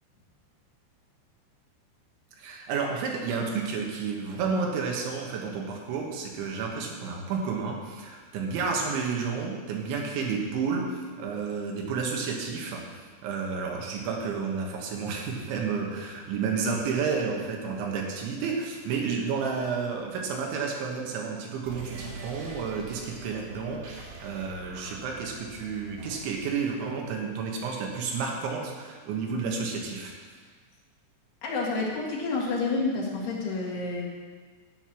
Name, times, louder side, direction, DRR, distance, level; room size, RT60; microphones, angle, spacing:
voice 1, 2.4-30.1, right 5 dB, 75° right, 0 dB, 3.7 m, -31 dB
sound 1, 21.6-26.6, right 2 dB, 55° right, 3.1 m, -44 dB
voice 2, 31.4-34.0, left 3 dB, 65° left, -3 dB, 3.7 m, -29 dB
12.0 x 8.9 x 6.2 m, 1.5 s
omnidirectional pair, 5.6 m